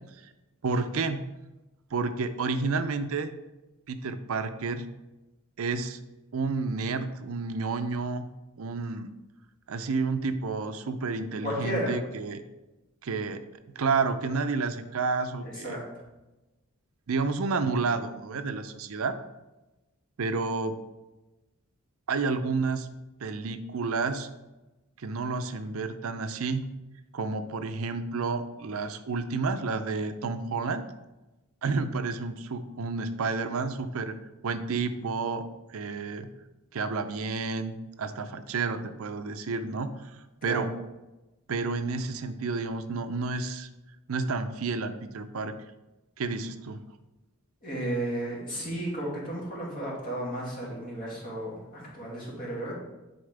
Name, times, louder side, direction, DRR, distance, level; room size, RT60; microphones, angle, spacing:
voice 1, 0.6-1.2 1.9-3.3 3.9-4.9 5.6-6.0 6.3-8.3 8.6-9.1 9.7-12.4 13.0-13.4 13.8-15.8 17.1-19.1 20.2-20.8 22.1-22.9 23.2-24.3 25.0-26.6 27.1-30.8 31.6-34.1 34.4-36.3 36.7-40.1 40.4-40.7 41.5-43.7 44.1-45.5 46.2-46.8, right 4 dB, 70° right, 9 dB, 0.5 m, -30 dB
voice 2, 11.4-11.9 15.4-15.8 40.4-40.7 47.6-52.7, right 1 dB, 40° left, -5 dB, 2.4 m, -33 dB
10.0 x 4.3 x 3.4 m, 1.0 s
head